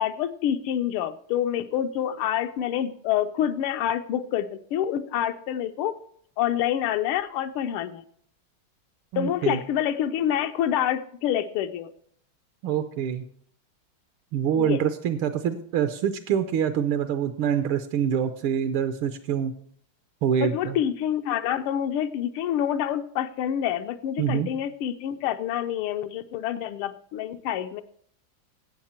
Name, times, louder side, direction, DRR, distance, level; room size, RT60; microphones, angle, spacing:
voice 1, 0.0-5.9 6.4-8.0 9.1-11.9 14.5-14.8 20.4-27.8, left 10 dB, 85° left, 8 dB, 1.5 m, -27 dB
voice 2, 9.1-9.6 12.6-13.2 14.3-19.5 20.2-20.8 24.2-24.5, right 8 dB, 80° right, 9 dB, 1.6 m, -25 dB
16.0 x 7.2 x 4.3 m, 0.63 s
omnidirectional pair, 2.3 m